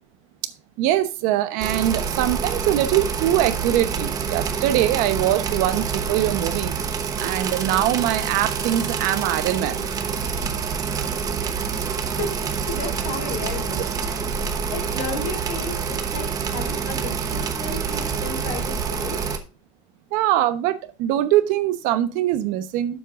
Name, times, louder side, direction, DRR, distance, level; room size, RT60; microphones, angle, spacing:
voice 1, 0.8-6.7 7.2-10.0 20.1-23.0, right 13 dB, 60° right, 11 dB, 1.0 m, -22 dB
sound 1, 1.6-19.4, right 6 dB, 25° right, 1.0 m, -27 dB
voice 2, 12.2-19.2, left 3 dB, 65° left, -3 dB, 4.3 m, -34 dB
11.0 x 7.7 x 2.5 m, 0.32 s
cardioid pair, 165°, 16 cm